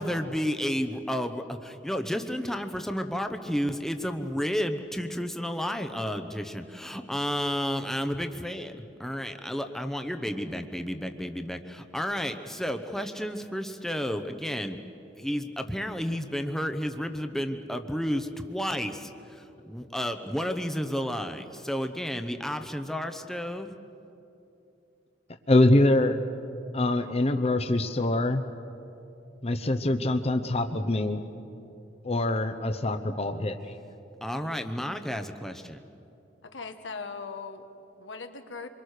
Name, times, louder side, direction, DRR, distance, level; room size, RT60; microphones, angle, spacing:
voice 1, 0.0-8.7 9.0-14.8 15.2-23.7 34.2-35.8, equal, ahead, 6 dB, 0.9 m, -31 dB
voice 2, 25.5-26.2 26.7-28.5 29.4-31.2 32.0-33.8, left 2 dB, 35° left, 7 dB, 0.9 m, -24 dB
voice 3, 36.4-38.7, left 4 dB, 85° left, 6 dB, 1.5 m, -40 dB
26.0 x 23.0 x 6.6 m, 2.8 s
head